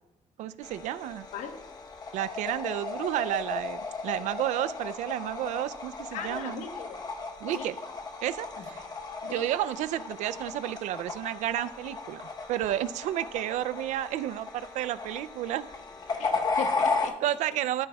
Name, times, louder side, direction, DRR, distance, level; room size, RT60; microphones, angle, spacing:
voice 1, 0.4-1.3 2.1-6.6 7.4-7.8 8.2-8.8 9.2-12.2 12.5-15.7 17.2-17.9, right 12 dB, 90° right, 15 dB, 0.4 m, -31 dB
sound 1, 0.6-17.1, left 4 dB, 35° left, 0.9 m, -35 dB
voice 2, 6.1-7.0 7.5-7.7 8.6-8.7 9.3-9.5 16.2-17.2, left 6 dB, 85° left, 5 dB, 1.2 m, -38 dB
12.5 x 10.0 x 2.3 m, 0.95 s
cardioid pair, 130°, 12 cm